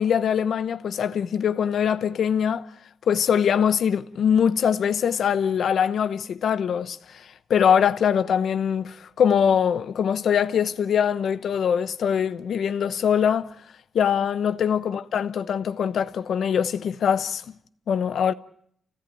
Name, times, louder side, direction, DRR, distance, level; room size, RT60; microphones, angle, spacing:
voice 1, 0.0-2.7 3.1-7.0 7.5-13.5 13.9-17.4 17.9-18.3, left 8 dB, 85° left, 0.9 m, -22 dB
30.0 x 16.0 x 9.3 m
wide cardioid pair, 130°, 0 cm